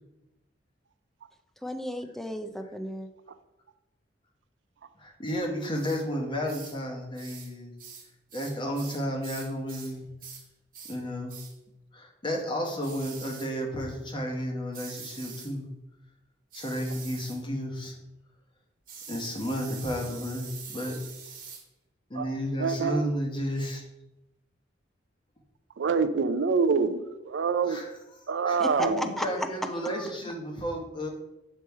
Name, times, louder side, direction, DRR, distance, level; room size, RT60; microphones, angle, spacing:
voice 1, 1.6-3.1 28.6-30.2, equal, ahead, 7 dB, 0.3 m, -34 dB
voice 2, 5.0-7.7 8.3-10.0 10.9-11.3 11.9-15.6 16.5-18.0 19.1-20.5 20.7-20.9 22.1-23.8 27.6-27.9 28.4-31.1, equal, 25° left, 1 dB, 1.0 m, -32 dB
sound 1, 5.8-6.0 6.5-6.8 7.2-7.5 7.8-9.9 10.2-10.5 10.7-11.0 11.3-11.5 12.8-13.5 14.7-15.5 16.5-17.4 18.9-21.6, right 6 dB, 45° right, 1.2 m, -44 dB
voice 3, 22.1-23.0 25.8-27.8 28.3-29.1, right 5 dB, 70° right, 12 dB, 0.4 m, -26 dB
6.9 x 3.0 x 4.6 m, 0.95 s
head